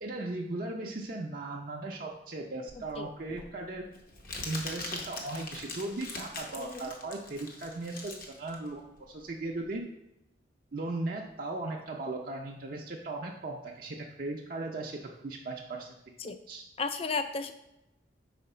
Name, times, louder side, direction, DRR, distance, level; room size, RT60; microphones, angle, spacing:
voice 1, 0.0-3.8 4.4-9.8 10.7-16.0 16.5-16.6, right 2 dB, 50° right, -1 dB, 0.5 m, -37 dB
Crumpling crinkling, 2.7-9.8, left 2 dB, 45° left, 0.9 m, -42 dB
voice 2, 16.8-17.5, left 4 dB, 30° left, 9 dB, 0.3 m, -33 dB
5.0 x 3.9 x 5.5 m, 0.91 s
head